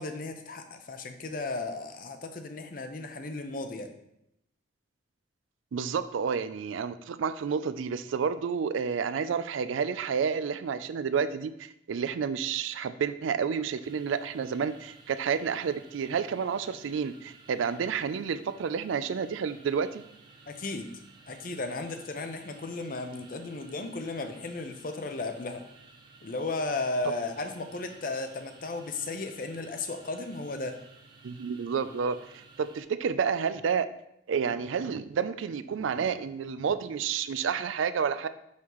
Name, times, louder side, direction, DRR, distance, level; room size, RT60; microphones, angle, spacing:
voice 1, 0.0-3.9 20.5-20.9 21.3-25.6 26.2-30.8, left 3 dB, 45° left, 7 dB, 0.6 m, -35 dB
voice 2, 5.7-20.0 31.2-33.9 34.3-38.3, right 6 dB, 85° right, 12 dB, 0.4 m, -30 dB
sound 1, 13.8-32.8, right 3 dB, 25° right, 0.6 m, -55 dB
6.3 x 5.7 x 3.0 m, 0.79 s
head